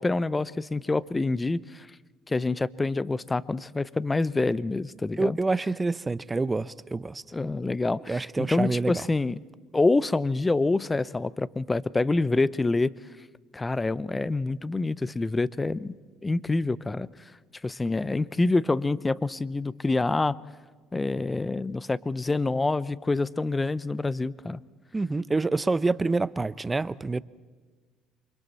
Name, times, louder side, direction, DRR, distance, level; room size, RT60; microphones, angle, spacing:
voice 1, 0.0-1.9 2.3-5.4 7.3-9.4 9.7-12.9 13.5-16.0 16.2-17.1 17.6-20.3 20.9-24.6, left 3 dB, 20° left, 0.7 m, -26 dB
voice 2, 5.2-7.2 8.1-8.9 24.9-27.2, right 3 dB, 20° right, 0.7 m, -27 dB
28.0 x 25.0 x 4.2 m
supercardioid pair, 85°, 0 cm